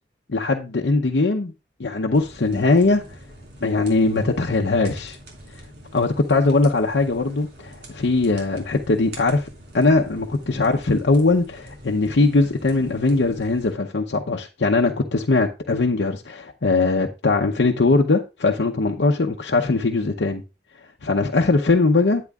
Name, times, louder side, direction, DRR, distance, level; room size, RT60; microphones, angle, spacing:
voice 1, 0.3-1.5 1.8-3.0 3.6-5.2 5.9-9.5 9.7-20.4 21.0-22.2, left 3 dB, 85° left, 0.7 m, -20 dB
sound 1, 2.1-13.7, right 1 dB, 70° right, 4.4 m, -44 dB
12.0 x 9.2 x 2.4 m
head